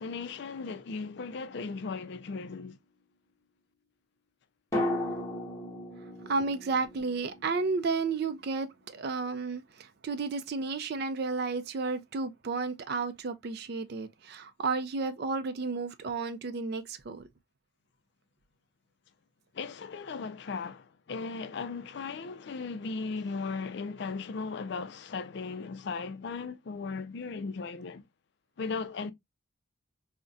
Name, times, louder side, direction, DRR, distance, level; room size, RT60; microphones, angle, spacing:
voice 1, 0.0-2.8 19.5-28.0 28.6-29.1, left 4 dB, 55° left, 0.4 m, -37 dB
sound 1, 1.1-2.3 4.7-8.7 8.9-9.0, left 1 dB, 15° left, 0.9 m, -36 dB
voice 2, 6.2-17.3, right 4 dB, 50° right, 0.4 m, -32 dB
3.8 x 2.1 x 2.3 m
head